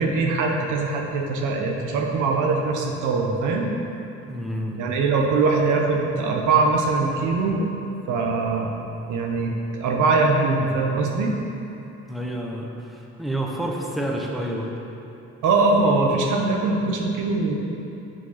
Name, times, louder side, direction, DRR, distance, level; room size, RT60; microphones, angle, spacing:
voice 1, 0.0-3.7 4.8-7.7 8.1-8.7 9.1-11.3 15.4-17.6, right 3 dB, 85° right, 0 dB, 1.0 m, -22 dB
voice 2, 4.3-4.8 12.1-14.7, right 1 dB, ahead, -1 dB, 0.9 m, -29 dB
6.1 x 5.2 x 5.8 m, 2.9 s
cardioid pair, 90°, 30 cm